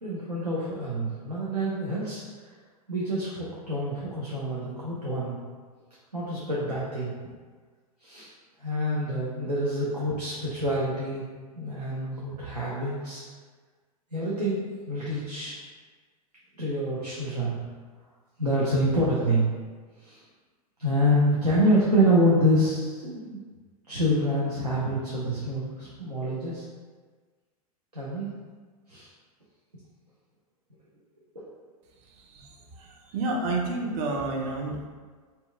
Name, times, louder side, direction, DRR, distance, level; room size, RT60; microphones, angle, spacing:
voice 1, 0.0-2.2 2.9-5.4 6.1-7.1 8.0-8.3 8.6-11.3 11.6-13.2 14.1-15.6 16.6-17.6 18.4-19.5 20.0-20.2 20.8-23.4 23.9-26.6 27.9-28.3 28.9-29.1 31.4-31.5, equal, 90° right, -7 dB, 0.6 m, -26 dB
voice 2, 32.0-34.8, right 2 dB, 35° right, 1 dB, 0.5 m, -31 dB
2.8 x 2.2 x 3.3 m, 1.5 s
figure-of-eight pair, 90°, 20 cm